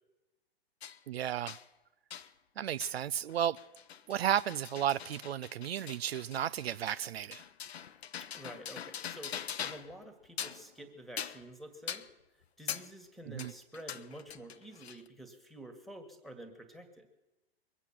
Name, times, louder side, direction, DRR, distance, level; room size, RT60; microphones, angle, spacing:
sound 1, 0.8-1.0 1.5-1.6 2.1-2.3 2.8-3.0 3.3-10.0 10.2-10.7 11.2-11.5 11.9-12.1 12.7-12.9 13.4-15.1, left 8 dB, 75° left, 0.8 m, -43 dB
voice 1, 1.1-1.6 2.6-3.6 4.1-7.4 13.3-13.5, right 10 dB, 70° right, 0.5 m, -33 dB
voice 2, 8.3-9.4 9.6-12.0 12.6-17.1, right 1 dB, ahead, 1.7 m, -49 dB
22.0 x 8.4 x 7.3 m
hypercardioid pair, 115°, 32 cm